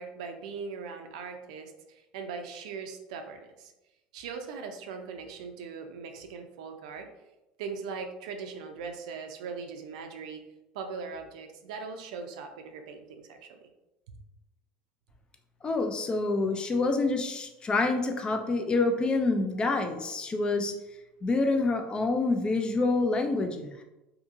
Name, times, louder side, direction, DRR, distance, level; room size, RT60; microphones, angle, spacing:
voice 1, 0.0-3.7 4.1-7.1 7.6-10.4 10.7-13.6, right 5 dB, 80° right, 6 dB, 0.4 m, -40 dB
voice 2, 15.6-20.7 21.2-23.8, left 3 dB, 25° left, 5 dB, 0.4 m, -27 dB
2.7 x 2.7 x 2.5 m, 0.97 s
supercardioid pair, 95°, 4 cm